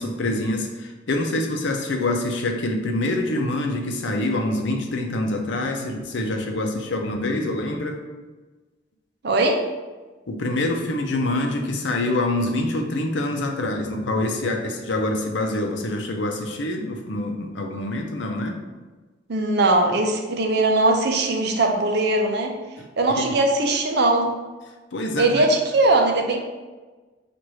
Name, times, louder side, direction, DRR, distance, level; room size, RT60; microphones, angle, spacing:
voice 1, 0.0-8.0 10.3-18.6 24.9-25.4, left 2 dB, 75° left, 3 dB, 0.6 m, -25 dB
voice 2, 9.2-9.6 19.3-22.5 23.0-24.3 25.2-26.4, right 2 dB, 60° right, 3 dB, 0.6 m, -20 dB
6.2 x 2.5 x 3.0 m, 1.3 s
head